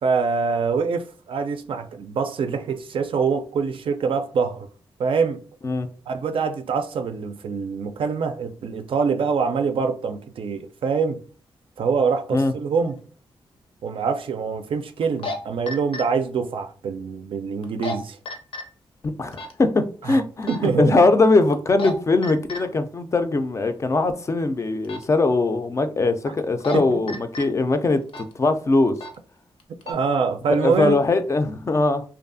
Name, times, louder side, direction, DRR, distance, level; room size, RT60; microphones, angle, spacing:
voice 1, 0.0-4.7 5.0-5.4 6.1-11.2 11.8-13.0 13.8-18.2 20.1-20.2 20.5-21.0 26.7-27.0 29.9-31.0, right 5 dB, 65° right, 0.4 m, -24 dB
sound 1, 13.0-13.1 15.0-15.4 15.7-16.0 17.6-17.9 18.3-18.6 19.3-19.5 20.4-20.7 21.5-21.9 22.2-22.6 24.8-25.0 26.4-26.8 27.1-27.5 28.1-28.3 29.0-29.1 29.6-29.9, left 2 dB, 75° left, 0.6 m, -31 dB
voice 2, 19.0-29.0 30.5-32.0, left 3 dB, 30° left, 0.3 m, -21 dB
2.6 x 2.3 x 2.5 m
cardioid pair, 95°, 10 cm